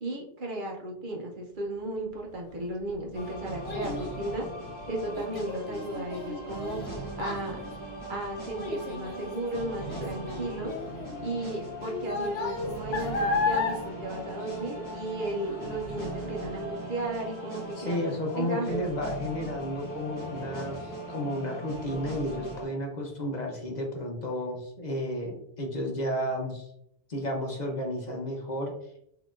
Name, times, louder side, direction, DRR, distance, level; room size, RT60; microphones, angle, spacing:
voice 1, 0.0-4.5 4.9-6.8 7.2-7.6 8.1-10.7 11.2-18.0 18.4-18.8, right 2 dB, 55° right, 0 dB, 0.9 m, -34 dB
Child speech kid speaking, 2.5-15.1 15.5-15.9 16.4-16.5, left 3 dB, 90° left, 1.0 m, -34 dB
sound 1, 3.1-22.7, right 1 dB, 20° left, 1.3 m, -39 dB
voice 2, 17.8-26.7 27.1-28.7, left 1 dB, 45° left, 1 dB, 0.8 m, -32 dB
5.5 x 2.9 x 2.4 m, 0.75 s
omnidirectional pair, 1.0 m